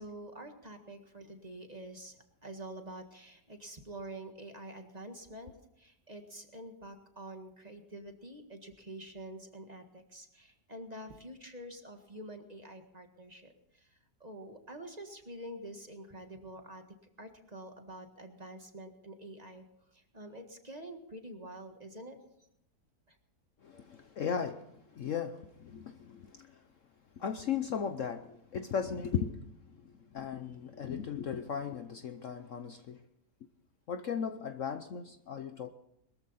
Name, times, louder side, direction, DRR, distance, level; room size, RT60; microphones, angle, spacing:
voice 1, 0.0-2.2 2.4-13.9 14.2-16.8 17.2-19.6 19.9-22.2 23.1-23.2, right 1 dB, 25° right, 1.7 m, -47 dB
voice 2, 23.6-26.6 27.2-33.0 33.9-35.7, left 7 dB, 55° left, 1.0 m, -37 dB
22.0 x 14.0 x 4.2 m
omnidirectional pair, 1.8 m